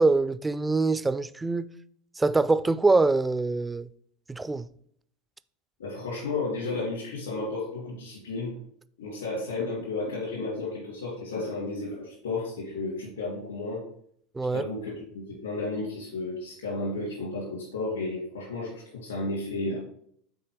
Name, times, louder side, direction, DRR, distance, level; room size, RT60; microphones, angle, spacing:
voice 1, 0.0-1.7 2.2-3.9 4.3-4.7 14.4-14.6, right 3 dB, 15° right, 0.3 m, -24 dB
voice 2, 5.8-8.5 9.0-13.8 14.5-19.8, left 3 dB, 80° left, 2.4 m, -33 dB
6.3 x 4.3 x 4.7 m
figure-of-eight pair, 80°, 0 cm